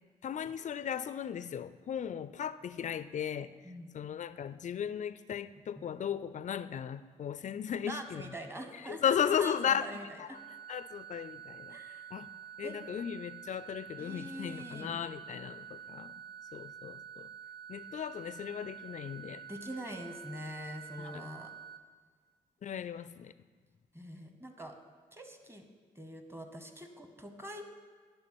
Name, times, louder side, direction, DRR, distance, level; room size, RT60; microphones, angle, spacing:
voice 1, 0.2-3.5 3.9-8.3 8.8-9.9 10.2-10.3 10.7-11.8 12.1-12.3 12.6-16.1 16.5-17.3 17.7-19.5 21.0-21.3 22.6-23.3, left 8 dB, 40° left, 0.4 m, -36 dB
voice 2, 3.6-4.0 5.5-5.6 7.9-10.2 11.7-12.1 12.6-12.8 14.0-15.0 19.5-21.5 23.9-24.8 25.1-25.6 25.9-27.6, right 1 dB, 15° right, 1.1 m, -44 dB
sound 1, 10.3-21.8, right 8 dB, 70° right, 0.6 m, -48 dB
8.8 x 3.4 x 6.0 m
hypercardioid pair, 45°, 18 cm